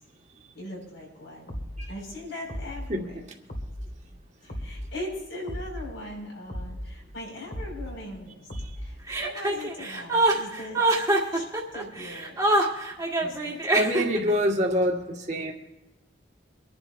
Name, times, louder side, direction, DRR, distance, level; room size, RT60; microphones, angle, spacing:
voice 1, 0.5-1.6 1.9-3.2 4.4-8.5 8.8-12.4 13.2-13.9, left 1 dB, 80° left, -1 dB, 5.2 m, -40 dB
sound 1, 1.5-1.9 2.5-2.9 3.5-3.9 4.5-4.9 5.5-5.9 6.5-6.9 7.5-7.9 8.5-8.9, equal, 50° left, 1.8 m, -35 dB
Chuckle chortle, 9.1-14.3, right 2 dB, 15° right, 1.6 m, -24 dB
voice 2, 13.7-15.5, equal, 35° right, 1 dB, 1.6 m, -25 dB
25.0 x 11.0 x 2.6 m, 1.0 s
head